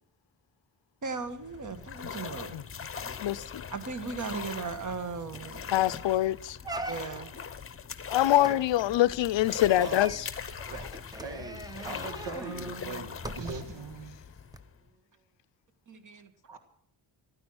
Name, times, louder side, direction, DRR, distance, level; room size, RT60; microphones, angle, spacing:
voice 1, 1.0-2.6 3.7-5.7 6.9-7.4 8.2-8.3 10.8-10.9 15.9-16.3, right 4 dB, 40° right, 1.6 m, -37 dB
sound 1, 1.1-14.9, left 7 dB, 30° left, 0.8 m, -41 dB
voice 2, 3.2-3.6 5.7-6.6 8.1-10.2, left 14 dB, 70° left, 0.6 m, -25 dB
sound 2, 5.3-5.6 6.0-6.1 6.6-7.4 8.4-13.9 14.5-14.6, right 2 dB, 10° right, 0.8 m, -42 dB
voice 3, 9.7-10.2 10.7-10.9 11.2-14.2 16.5-16.6, right 4 dB, 65° right, 1.7 m, -40 dB
14.5 x 13.0 x 6.2 m
wide cardioid pair, 160°, 45 cm